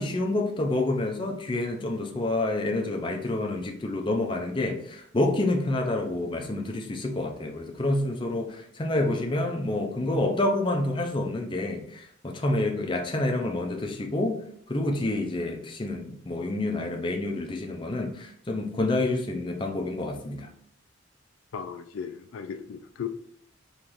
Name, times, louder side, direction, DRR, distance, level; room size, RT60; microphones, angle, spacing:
voice 1, 0.0-14.4 14.7-20.5, left 2 dB, 25° left, 2 dB, 0.5 m, -28 dB
voice 2, 21.5-23.1, left 7 dB, 85° left, 8 dB, 0.4 m, -36 dB
3.7 x 3.1 x 3.0 m, 0.64 s
head